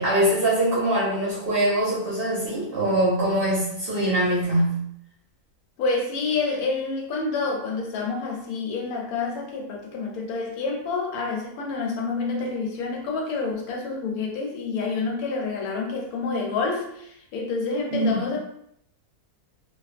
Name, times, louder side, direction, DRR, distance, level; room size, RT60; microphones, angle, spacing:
voice 1, 0.0-4.9 17.9-18.2, right 1 dB, 55° right, -7 dB, 0.7 m, -23 dB
voice 2, 5.8-18.4, left 4 dB, 80° left, 0 dB, 1.0 m, -28 dB
2.4 x 2.3 x 2.4 m, 0.74 s
omnidirectional pair, 1.6 m